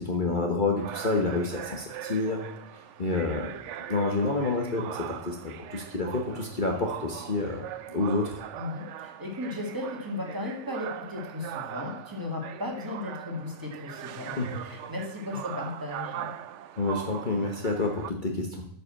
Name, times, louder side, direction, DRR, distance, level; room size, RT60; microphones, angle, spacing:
voice 1, 0.0-2.4 3.0-3.5 3.9-5.4 5.7-7.6 7.9-8.4 14.4-14.5 16.8-18.6, left 3 dB, 35° left, 1 dB, 1.2 m, -28 dB
sound 1, 0.8-18.1, right 11 dB, 65° right, 0.8 m, -40 dB
voice 2, 8.6-16.3, left 2 dB, 15° right, 0 dB, 1.9 m, -36 dB
9.1 x 5.5 x 7.4 m, 0.73 s
omnidirectional pair, 1.5 m